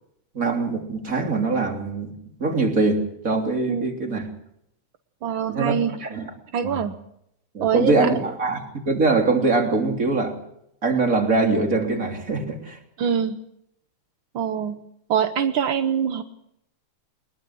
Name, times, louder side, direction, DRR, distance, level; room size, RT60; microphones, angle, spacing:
voice 1, 0.4-2.1 2.4-4.3 5.5-6.3 6.6-6.8 7.5-10.4 10.8-12.8, right 3 dB, 25° right, 3 dB, 3.4 m, -23 dB
voice 2, 5.2-6.1 6.5-6.9 7.6-8.1 13.0-13.4 14.3-14.8 15.1-16.2, right 8 dB, 65° right, 9 dB, 1.2 m, -24 dB
22.5 x 21.0 x 6.3 m, 0.76 s
omnidirectional pair, 3.4 m